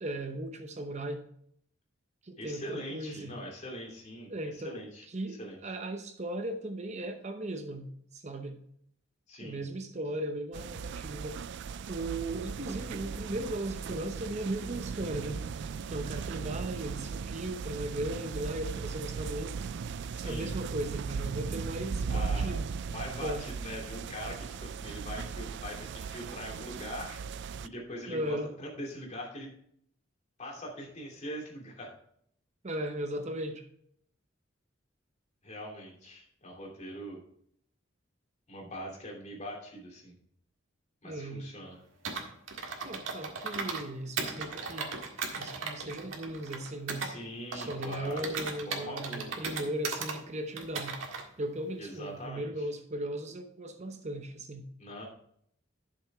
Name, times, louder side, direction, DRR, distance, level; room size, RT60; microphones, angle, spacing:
voice 1, 0.0-1.2 2.2-3.4 4.3-4.8 5.1-8.6 9.4-11.4 11.9-15.5 15.9-19.6 20.2-22.7 23.2-23.4 28.1-28.5 32.6-33.6 41.0-41.4 42.8-44.9 45.4-47.1 47.5-51.0 51.4-54.7, right 1 dB, 35° right, 7 dB, 0.8 m, -37 dB
voice 2, 2.4-4.3 4.6-5.0 5.4-5.6 9.3-9.6 20.1-20.5 22.1-22.6 22.9-27.2 27.6-29.5 30.4-31.9 35.4-37.2 38.5-40.1 41.0-41.8 47.0-48.3 48.7-49.3 51.8-52.5 54.8-55.0, equal, 35° left, -1 dB, 2.8 m, -42 dB
sound 1, 10.5-27.7, right 5 dB, 65° right, 0.4 m, -37 dB
Computer keyboard, 42.0-43.9 44.2-47.1 47.5-50.2 50.6-51.2, right 4 dB, 85° right, 1.7 m, -37 dB
11.5 x 6.7 x 3.5 m, 0.66 s
head